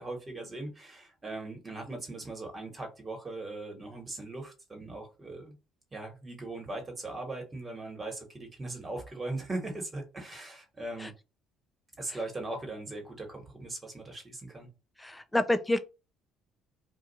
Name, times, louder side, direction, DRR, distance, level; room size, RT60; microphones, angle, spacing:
voice 1, 0.0-5.5 5.9-11.1 12.0-14.7, right 2 dB, 25° right, 1.4 m, -39 dB
voice 2, 15.0-15.8, left 1 dB, 10° left, 0.4 m, -28 dB
2.5 x 2.4 x 4.0 m
supercardioid pair, 90°, 0 cm